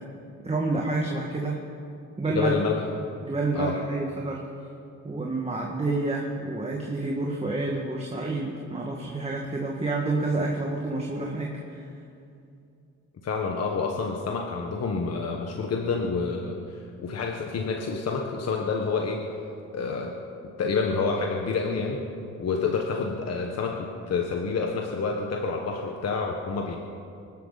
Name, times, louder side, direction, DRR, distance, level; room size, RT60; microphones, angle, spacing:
voice 1, 0.4-1.6 2.2-2.6 3.2-4.4 5.0-11.9, right 2 dB, 20° right, -2 dB, 2.0 m, -29 dB
voice 2, 2.3-2.8 3.5-3.8 13.2-19.2 19.7-20.1 20.6-22.0 22.4-26.8, left 4 dB, 55° left, 1 dB, 1.5 m, -28 dB
24.0 x 12.5 x 4.2 m, 2.5 s
cardioid pair, 90°, 30 cm